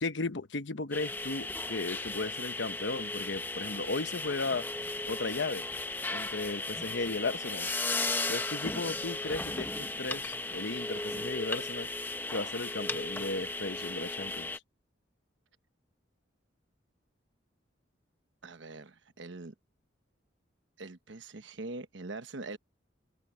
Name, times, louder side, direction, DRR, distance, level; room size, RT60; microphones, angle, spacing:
voice 1, 0.0-4.7 5.1-5.6 6.1-7.7 8.3-11.9 12.3-14.5, left 3 dB, 70° left, 1.0 m, -35 dB
sound 1, 0.9-14.6, left 2 dB, 10° left, 0.7 m, -36 dB
voice 2, 18.4-19.5 20.8-22.6, right 2 dB, 75° right, 1.1 m, -43 dB
head